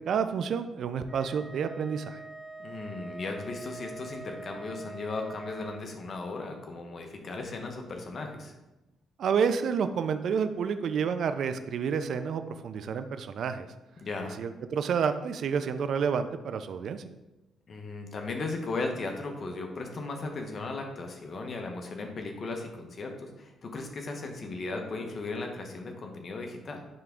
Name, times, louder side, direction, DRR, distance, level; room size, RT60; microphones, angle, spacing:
voice 1, 0.1-2.2 9.2-13.7 14.4-17.0, right 6 dB, 65° right, 10 dB, 0.4 m, -29 dB
Wind instrument woodwind instrument, 1.1-5.9, right 3 dB, ahead, 2.5 m, -44 dB
voice 2, 2.6-8.5 14.0-14.4 17.7-26.8, left 3 dB, 45° left, 3 dB, 1.0 m, -36 dB
11.0 x 3.6 x 3.6 m, 1.0 s
cardioid pair, 90°, 0 cm